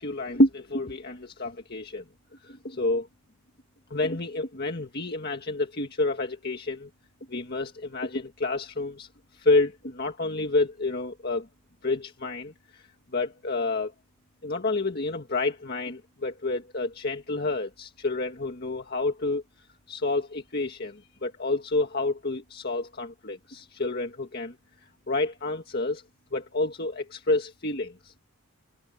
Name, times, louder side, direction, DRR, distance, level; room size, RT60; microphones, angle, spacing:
voice 1, 0.0-2.0 2.4-3.1 3.9-6.9 7.3-9.1 9.3-11.5 11.8-12.9 13.1-13.9 14.4-19.4 19.9-24.6 25.1-26.0 26.3-28.2, left 2 dB, 45° left, 1.9 m, -29 dB
head